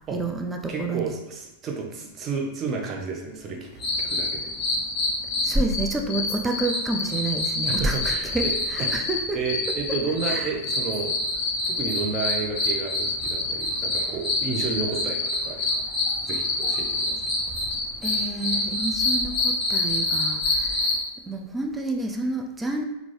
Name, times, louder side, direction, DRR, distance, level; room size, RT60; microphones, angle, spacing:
voice 1, 0.1-1.1 5.4-9.4 10.3-10.5 18.0-20.9 21.3-22.8, right 2 dB, 10° right, 2 dB, 0.3 m, -29 dB
voice 2, 0.7-3.7 4.0-4.5 7.7-11.2 11.7-15.8 16.3-17.2, right 4 dB, 25° right, 0 dB, 0.7 m, -31 dB
sound 1, 3.8-21.0, left 2 dB, 30° left, 1.1 m, -26 dB
3.6 x 2.4 x 3.2 m, 0.93 s
figure-of-eight pair, 90°, 0 cm